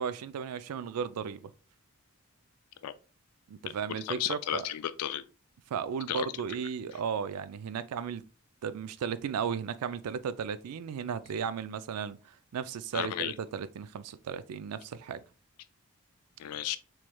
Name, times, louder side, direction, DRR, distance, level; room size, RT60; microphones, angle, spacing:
voice 1, 0.0-1.5 3.5-4.7 5.7-8.2 8.6-15.2, right 7 dB, 90° right, 0.4 m, -35 dB
voice 2, 3.9-5.2 6.1-6.3 12.9-13.4 16.4-16.8, left 11 dB, 90° left, 0.3 m, -33 dB
4.5 x 3.1 x 2.2 m
head